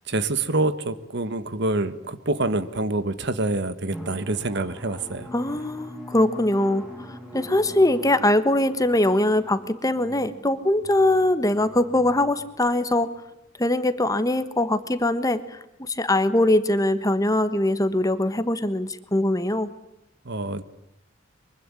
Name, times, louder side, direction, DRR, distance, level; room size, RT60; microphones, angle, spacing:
voice 1, 0.1-5.3 20.2-20.6, right 2 dB, 60° right, 13 dB, 1.5 m, -26 dB
Drum, 3.9-13.2, equal, 5° right, 5.1 m, -42 dB
voice 2, 5.3-13.1 13.6-19.7, left 1 dB, 15° left, 12 dB, 1.3 m, -22 dB
24.0 x 24.0 x 9.9 m, 0.80 s
head